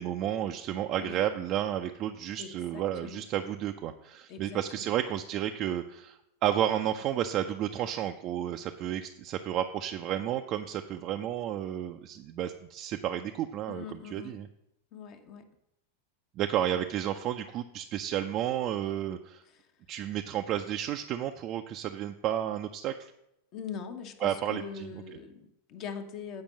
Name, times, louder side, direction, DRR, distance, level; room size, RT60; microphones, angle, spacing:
voice 1, 0.0-14.5 16.4-19.4 19.9-23.1 24.2-24.9, right 11 dB, 35° right, 5 dB, 0.5 m, -32 dB
voice 2, 2.4-3.3 4.3-5.0 13.7-14.4 14.9-15.5 19.4-19.7 23.5-26.4, left 6 dB, 40° left, 6 dB, 0.9 m, -42 dB
8.6 x 5.1 x 7.3 m, 0.82 s
figure-of-eight pair, 90°, 0 cm